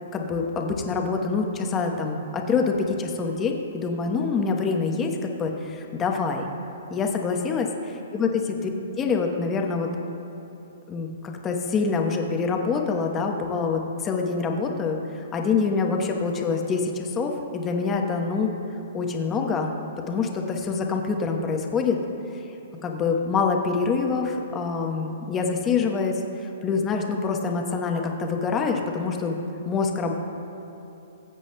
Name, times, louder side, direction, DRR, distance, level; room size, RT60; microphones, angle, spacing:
voice 1, 0.1-6.5 6.9-8.4 9.0-9.9 10.9-15.0 15.3-18.5 18.9-19.7 20.1-22.0 22.8-26.2 26.6-29.4 29.6-30.2, left 4 dB, 20° left, 2 dB, 0.9 m, -25 dB
20.0 x 7.9 x 2.2 m, 2.9 s
hypercardioid pair, 145°, 0 cm